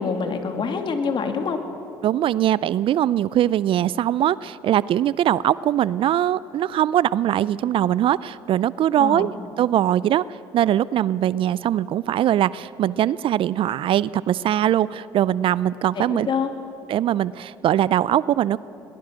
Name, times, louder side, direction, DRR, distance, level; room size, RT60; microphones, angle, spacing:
voice 1, 0.0-1.6 9.0-9.3 16.0-16.5, left 5 dB, 50° left, 6 dB, 2.4 m, -25 dB
voice 2, 2.0-9.3 9.6-10.2 10.5-16.3 16.9-18.6, right 11 dB, 55° right, 20 dB, 0.4 m, -21 dB
21.5 x 19.5 x 6.3 m, 2.7 s
hypercardioid pair, 60°, 11 cm